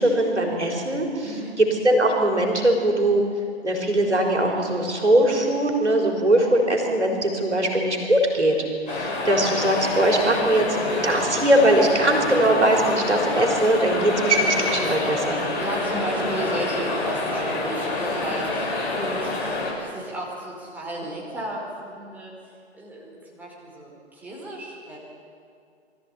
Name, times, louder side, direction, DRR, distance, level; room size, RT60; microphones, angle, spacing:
voice 1, 0.0-3.2 3.6-8.6 8.9-10.7 10.9-15.4, right 1 dB, 85° right, 1 dB, 4.1 m, -21 dB
voice 2, 1.2-1.6 9.0-9.2 15.4-22.3 22.7-25.0, right 1 dB, 5° right, -5 dB, 4.9 m, -34 dB
sound 1, 8.9-19.7, left 2 dB, 45° left, 5.7 m, -27 dB
23.0 x 14.5 x 8.5 m, 2.3 s
figure-of-eight pair, 125°, 34 cm